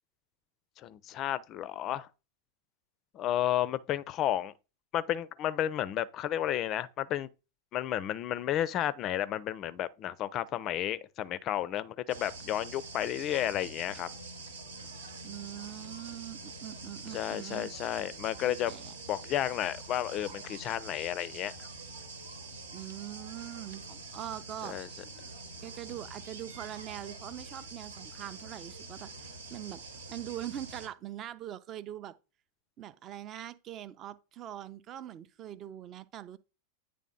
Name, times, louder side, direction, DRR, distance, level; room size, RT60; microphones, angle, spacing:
voice 1, 0.8-2.1 3.1-4.5 4.9-7.3 7.7-14.1 17.1-18.7 19.1-21.7 24.6-24.9, left 12 dB, 35° left, 0.4 m, -32 dB
sound 1, 12.1-30.9, right 3 dB, 70° right, 1.0 m, -45 dB
voice 2, 15.2-17.7 18.4-18.9 22.7-24.8 25.6-29.8 30.1-32.1 32.8-36.4, right 12 dB, 30° right, 0.4 m, -42 dB
9.2 x 3.4 x 3.7 m
figure-of-eight pair, 90°, 0 cm